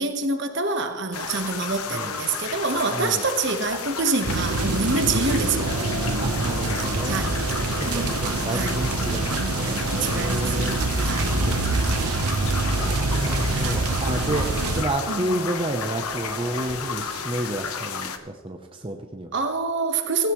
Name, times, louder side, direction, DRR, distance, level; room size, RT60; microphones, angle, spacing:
voice 1, 0.0-5.7 7.0-7.4 7.8-8.1 8.5-8.8 10.0-11.3 13.5-13.8 15.1-15.4 19.3-20.3, right 3 dB, 50° right, 6 dB, 1.2 m, -26 dB
sound 1, 1.1-18.2, left 6 dB, 80° left, 1.0 m, -33 dB
voice 2, 2.9-3.2 6.1-7.3 7.8-10.8 11.5-11.6 11.8-19.3, right 1 dB, 25° right, 3 dB, 0.7 m, -31 dB
sound 2, 4.2-14.8, right 3 dB, 85° right, 0.9 m, -25 dB
sound 3, 4.3-17.3, right 2 dB, 55° left, 2.3 m, -38 dB
16.0 x 16.0 x 3.1 m, 1.5 s
head